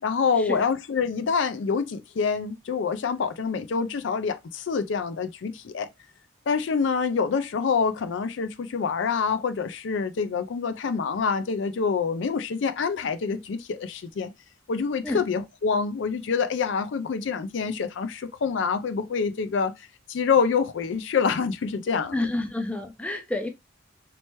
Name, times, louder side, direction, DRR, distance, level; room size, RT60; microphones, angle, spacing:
voice 1, 0.0-5.9 6.5-14.3 14.7-22.2, left 5 dB, 65° left, 0.4 m, -26 dB
voice 2, 22.1-23.5, left 2 dB, 5° left, 0.4 m, -29 dB
3.2 x 3.0 x 3.0 m
head